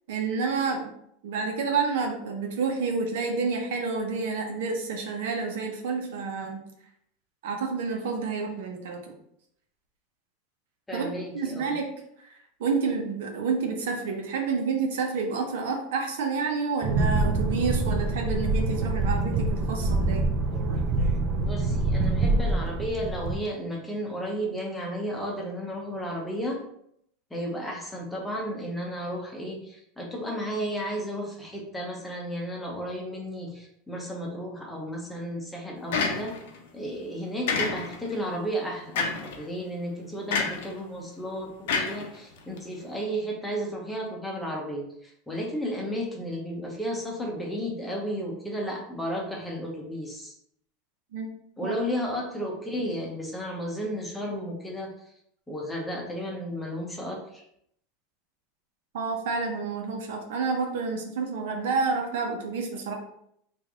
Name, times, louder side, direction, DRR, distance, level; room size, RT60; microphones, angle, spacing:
voice 1, 0.1-0.9 1.2-6.6 7.4-9.0 10.9-11.1 11.3-11.9 12.2-12.3 12.6-20.2 51.1-51.3 51.6-51.7 58.9-62.9, right 4 dB, 80° right, 2 dB, 0.8 m, -29 dB
voice 2, 10.9-11.8 21.4-26.6 27.3-36.4 36.7-50.3 51.6-55.1 55.5-57.4, equal, 5° left, -1 dB, 0.8 m, -33 dB
sound 1, 16.8-23.4, right 2 dB, 40° right, 0.5 m, -25 dB
sound 2, 35.9-36.6 37.5-38.1 39.0-39.4 40.3-40.7 41.7-42.6, left 4 dB, 80° left, 0.6 m, -28 dB
3.2 x 2.5 x 3.6 m, 0.72 s
supercardioid pair, 140°, 0 cm